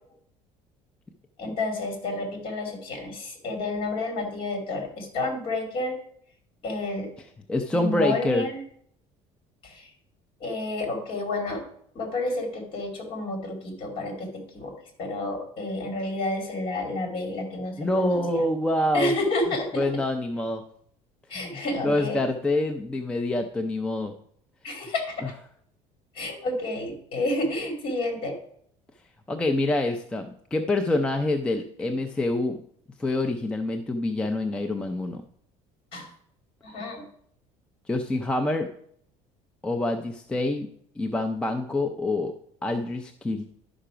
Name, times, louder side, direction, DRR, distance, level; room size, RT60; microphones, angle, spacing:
voice 1, 1.4-6.0 6.6-7.1 7.7-8.6 9.6-9.9 10.4-11.6 11.9-14.7 15.0-18.2 18.9-19.8 21.3-22.2 24.6-25.2 26.2-28.3 35.9-36.1 36.6-37.0, left 2 dB, 40° left, 3 dB, 2.4 m, -30 dB
voice 2, 7.5-8.5 17.8-19.1 19.7-20.6 21.3-24.1 25.2-25.3 29.3-32.6 33.0-35.2 37.9-38.7 39.6-40.7 41.0-42.3 42.6-43.4, left 2 dB, 5° left, 5 dB, 0.4 m, -26 dB
11.0 x 5.7 x 4.9 m, 0.66 s
cardioid pair, 175°, 14 cm